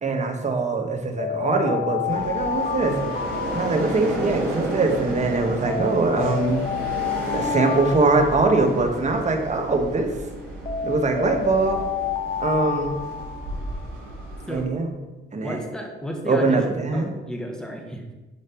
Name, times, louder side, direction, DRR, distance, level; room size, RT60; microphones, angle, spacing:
voice 1, 0.0-3.2 3.5-6.6 7.3-10.1 10.8-11.8 12.4-12.9 14.5-14.9 15.3-15.6 16.3-17.1, right 3 dB, 35° right, 3 dB, 1.5 m, -22 dB
Alarm, 1.2-4.5 5.7-9.5 10.7-13.9, left 7 dB, 40° left, 1.0 m, -30 dB
sound 1, 2.1-14.6, right 2 dB, 75° right, 3.3 m, -32 dB
voice 2, 15.4-18.1, equal, 5° left, 1 dB, 1.8 m, -33 dB
10.5 x 5.0 x 4.6 m, 1.1 s
cardioid pair, 90°, 20 cm